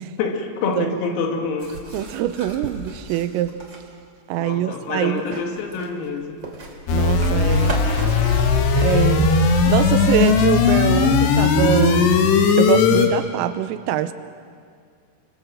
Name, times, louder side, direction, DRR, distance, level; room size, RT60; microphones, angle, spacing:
voice 1, 0.0-1.8 4.4-6.4, left 4 dB, 85° left, 3 dB, 5.1 m, -26 dB
sound 1, 1.6-3.8 5.2-8.9, right 2 dB, 30° right, 2.7 m, -35 dB
voice 2, 1.9-3.6 4.3-5.4 6.9-8.1 8.8-12.2 12.6-14.1, right 12 dB, 85° right, 11 dB, 3.5 m, -24 dB
sound 2, 6.9-13.1, left 5 dB, 65° left, 3.4 m, -17 dB
29.0 x 25.5 x 7.8 m, 2.1 s
omnidirectional pair, 6.0 m